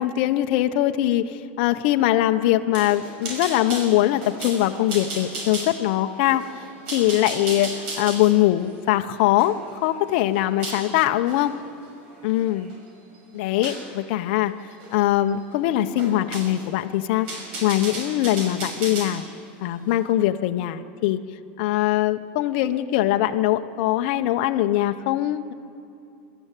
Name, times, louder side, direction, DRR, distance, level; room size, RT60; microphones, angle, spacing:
voice 1, 0.0-6.4 6.9-11.5 12.2-12.7 13.3-14.5 14.9-17.3 17.6-19.3 19.6-21.2 21.6-25.5, left 13 dB, 60° left, 7 dB, 0.9 m, -22 dB
sound 1, 2.7-10.9 11.3-11.5 12.1-12.8 13.6-13.9 14.8-15.0 15.3-15.4 16.0-16.7 17.1-19.2, right 2 dB, 70° right, 5.7 m, -35 dB
23.5 x 13.0 x 9.1 m, 2.7 s
supercardioid pair, 150°, 6 cm